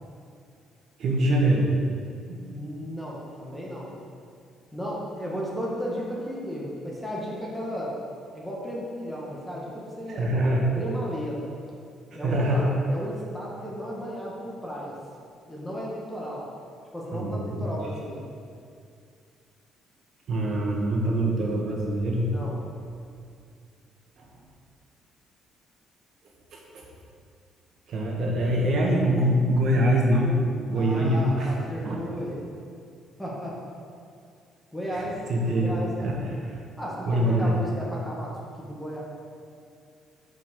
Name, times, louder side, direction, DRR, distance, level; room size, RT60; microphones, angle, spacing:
voice 1, 1.0-1.7 2.3-2.4 10.1-10.6 12.1-12.7 17.1-17.6 20.3-22.3 24.2-24.3 26.5-26.8 27.9-31.5 31.8-32.0 34.9-35.0 35.3-36.2 36.5-36.6 37.0-37.5, right 1 dB, 60° right, -1 dB, 1.5 m, -24 dB
voice 2, 2.5-3.9 4.7-7.9 8.3-10.3 10.6-11.5 12.1-14.9 15.5-16.5 16.9-18.2 22.3-22.6 30.7-32.4 33.2-33.6 34.7-35.2 35.5-36.2 36.8-39.0, equal, 5° left, -5 dB, 1.7 m, -34 dB
6.0 x 5.6 x 5.5 m, 2.3 s
cardioid pair, 100°, 0 cm